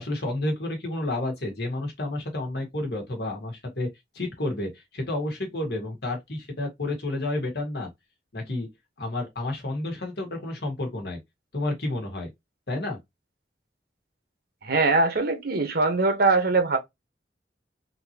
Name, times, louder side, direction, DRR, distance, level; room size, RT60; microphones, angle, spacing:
voice 1, 0.0-3.9 4.1-7.9 8.3-8.7 9.0-11.2 11.5-12.3 12.7-13.0, left 2 dB, 65° left, 1.4 m, -30 dB
voice 2, 14.6-16.8, right 3 dB, 60° right, 1.0 m, -22 dB
3.8 x 2.9 x 2.8 m
head